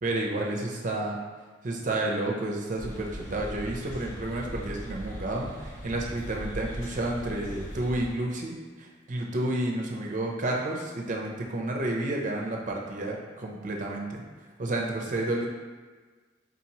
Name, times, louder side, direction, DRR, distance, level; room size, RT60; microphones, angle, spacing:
voice 1, 0.0-1.2 1.6-14.2 14.6-15.5, right 2 dB, 40° right, -1 dB, 0.5 m, -31 dB
sound 1, 2.8-8.1, equal, 65° left, 1.3 m, -39 dB
3.9 x 2.9 x 2.8 m, 1.4 s
head